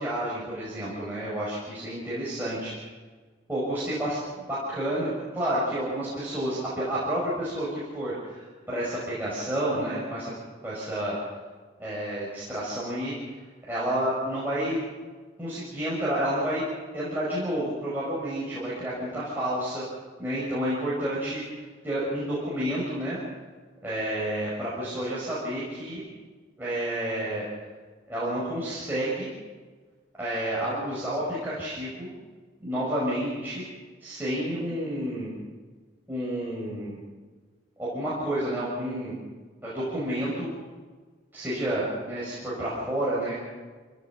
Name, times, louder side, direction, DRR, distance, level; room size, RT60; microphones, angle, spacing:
voice 1, 0.0-2.7 3.5-10.3 10.6-11.2 11.8-13.1 13.7-14.8 15.4-16.6 16.9-19.8 20.2-21.4 21.8-23.2 23.8-26.0 26.6-27.4 28.1-29.3 30.2-32.1 32.6-33.6 34.0-35.3 36.1-37.0 37.8-39.2 39.6-40.5 41.3-43.4, right 1 dB, 10° right, -9 dB, 5.6 m, -30 dB
26.5 x 17.0 x 6.0 m, 1.4 s
head